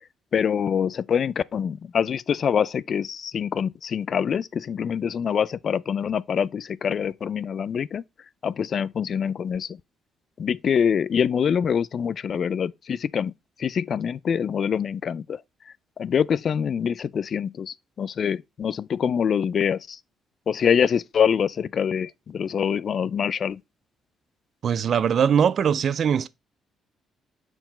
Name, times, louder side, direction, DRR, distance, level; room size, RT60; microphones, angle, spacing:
voice 1, 0.3-8.0 8.4-9.7 10.4-13.3 13.6-15.4 16.0-20.0 20.5-23.6, left 7 dB, 55° left, 0.3 m, -25 dB
voice 2, 24.6-26.3, right 7 dB, 55° right, 0.4 m, -21 dB
5.8 x 4.6 x 4.2 m
cardioid pair, 90°, 0 cm